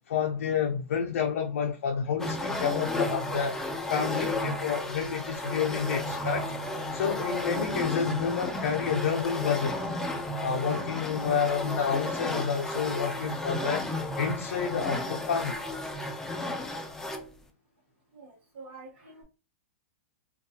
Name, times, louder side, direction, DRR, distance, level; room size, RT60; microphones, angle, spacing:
voice 1, 0.1-3.6 3.9-6.5 6.9-9.8 10.4-13.9 14.2-15.6, left 6 dB, 75° left, 0.4 m, -29 dB
sound 1, 2.2-17.3, left 1 dB, 5° left, 0.3 m, -33 dB
voice 2, 18.1-19.2, right 5 dB, 60° right, 0.9 m, -44 dB
2.6 x 2.2 x 2.4 m
hypercardioid pair, 130°, 7 cm